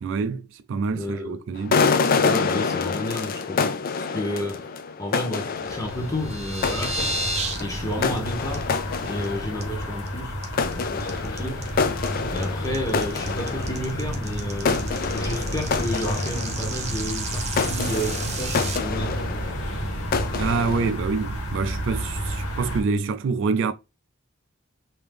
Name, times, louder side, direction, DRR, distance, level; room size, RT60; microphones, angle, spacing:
voice 1, 0.0-1.8 20.4-23.7, right 4 dB, 60° right, 0.3 m, -26 dB
voice 2, 0.9-1.4 2.1-4.7 5.0-7.2 7.5-8.7 9.0-10.4 10.6-11.7 12.3-19.4, left 1 dB, 15° left, 0.9 m, -31 dB
sound 1, 1.6-10.2 10.5-17.1 17.4-20.9, left 5 dB, 40° left, 0.3 m, -27 dB
sound 2, 5.6-22.8, equal, 80° left, 1.1 m, -31 dB
sound 3, 5.9-7.6 7.9-8.2 8.5-8.6 9.0-9.2 9.6-10.1 10.4-18.8, right 3 dB, 30° right, 0.7 m, -33 dB
3.5 x 2.8 x 3.3 m
head